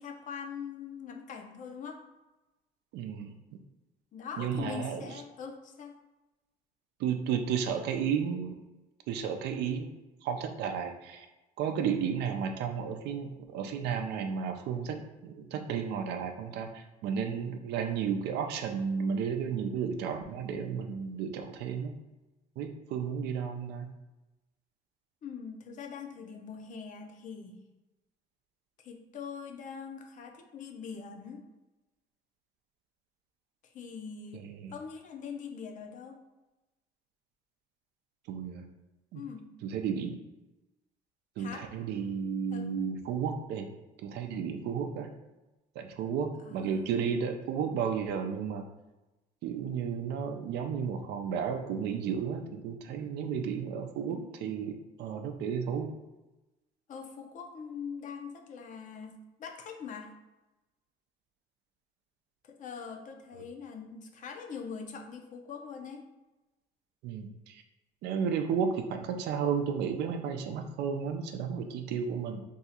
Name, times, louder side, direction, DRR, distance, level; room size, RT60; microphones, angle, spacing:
voice 1, 0.0-2.0 4.1-6.0 25.2-27.6 28.8-31.4 33.6-36.2 39.1-39.5 41.4-41.7 42.5-42.7 46.4-46.9 54.0-54.5 56.9-60.1 62.4-66.0, left 6 dB, 50° left, 4 dB, 0.5 m, -43 dB
voice 2, 2.9-3.3 4.4-5.2 7.0-8.6 9.1-9.9 10.2-11.3 11.6-22.0 22.6-23.9 34.3-34.7 38.3-38.7 39.1-39.2 39.6-40.2 41.4-43.7 44.0-45.1 45.8-48.6 49.4-55.9 67.0-67.6 68.0-72.4, right 7 dB, 80° right, 6 dB, 0.4 m, -33 dB
2.7 x 2.4 x 4.1 m, 1.1 s
cardioid pair, 110°, 17 cm